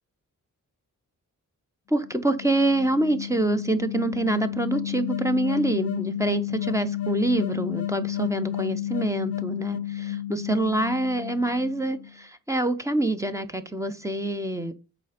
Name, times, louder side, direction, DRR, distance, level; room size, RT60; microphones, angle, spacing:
voice 1, 1.9-14.7, right 2 dB, 10° right, 0.6 m, -26 dB
sound 1, 2.0-12.1, left 12 dB, 50° left, 0.6 m, -31 dB
8.2 x 4.2 x 5.0 m
wide cardioid pair, 160°, 31 cm